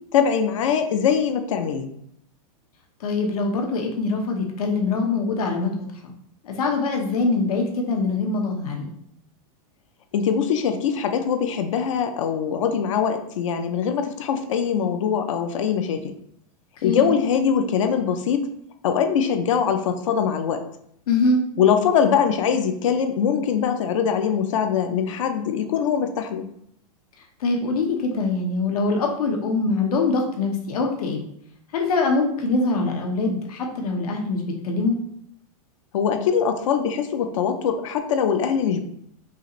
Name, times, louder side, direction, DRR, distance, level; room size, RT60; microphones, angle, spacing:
voice 1, 0.1-1.9 10.1-16.1 16.8-18.5 18.8-20.6 21.6-26.4 35.9-38.8, left 7 dB, 60° left, 7 dB, 0.5 m, -22 dB
voice 2, 3.0-6.1 6.4-8.9 16.8-17.1 21.1-21.4 27.4-31.2 31.7-35.0, left 3 dB, 80° left, 2 dB, 1.0 m, -23 dB
5.5 x 2.5 x 3.0 m, 0.70 s
supercardioid pair, 180°, 19 cm